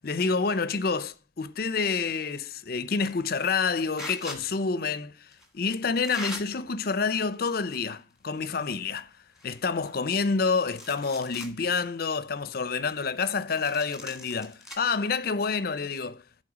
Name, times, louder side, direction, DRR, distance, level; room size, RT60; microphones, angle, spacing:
voice 1, 0.0-5.3 5.5-9.1 9.4-16.2, left 4 dB, 50° left, 0.6 m, -28 dB
sound 1, 2.9-3.2 3.9-4.4 5.3-5.5 6.0-6.4 7.3-8.0 8.3-8.4 8.9-9.0 9.3-10.4 10.7-11.5 12.0-12.1 13.5-14.7, left 1 dB, ahead, 1.8 m, -41 dB
11.5 x 4.4 x 6.1 m
head